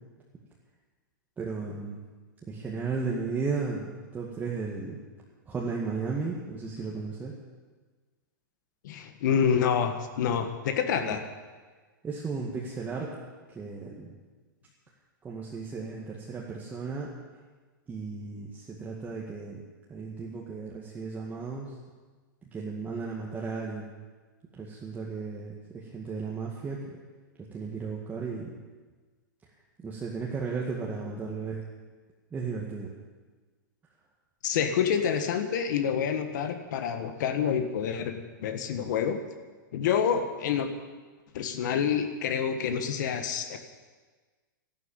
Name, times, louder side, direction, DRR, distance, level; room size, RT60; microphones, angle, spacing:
voice 1, 1.4-2.0 2.5-5.0 5.5-7.3 11.0-11.2 12.0-13.1 13.5-14.1 15.2-17.1 17.9-19.6 19.9-21.8 22.4-23.9 24.5-27.0 27.5-28.5 29.4-29.5 29.8-31.6 32.3-32.9, right 4 dB, 15° right, -3 dB, 1.9 m, -35 dB
voice 2, 8.8-11.2 34.4-39.2 39.7-40.7 41.3-43.6, left 7 dB, 60° left, 8 dB, 1.6 m, -27 dB
13.0 x 12.0 x 9.0 m, 1.4 s
hypercardioid pair, 140°, 11 cm